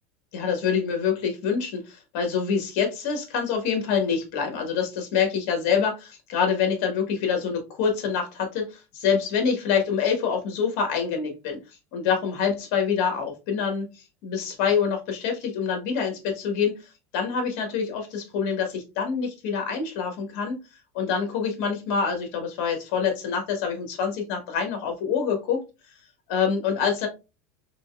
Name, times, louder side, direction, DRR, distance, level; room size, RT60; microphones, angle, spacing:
voice 1, 0.3-11.6 11.9-13.9 14.2-16.8 17.1-20.6 20.9-25.6 26.3-27.1, left 6 dB, 60° left, 4 dB, 1.4 m, -26 dB
3.9 x 3.2 x 2.3 m, 0.27 s
supercardioid pair, 140°, 8 cm